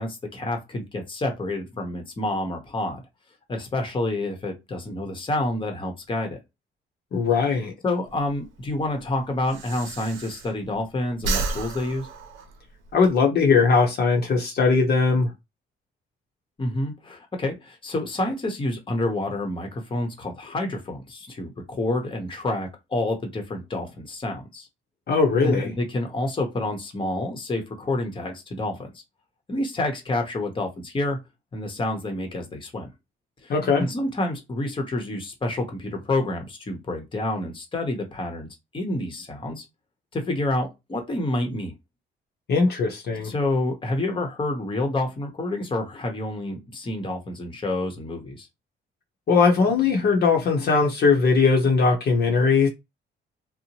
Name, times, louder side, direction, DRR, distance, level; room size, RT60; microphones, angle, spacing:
voice 1, 0.0-3.0 3.5-6.4 7.8-12.1 16.6-24.7 25.4-28.9 29.5-31.2 31.5-32.9 33.4-33.5 33.8-38.5 38.7-39.6 40.1-41.7 43.2-48.5, left 2 dB, 25° left, 0.9 m, -28 dB
voice 2, 7.1-7.7 12.9-15.3 25.1-25.7 33.5-33.9 42.5-43.3 49.3-52.7, left 4 dB, 55° left, 0.8 m, -20 dB
Breathing, 8.1-10.8 11.1-13.1, right 3 dB, 90° right, 0.6 m, -32 dB
2.8 x 2.1 x 2.9 m
cardioid pair, 90°, 20 cm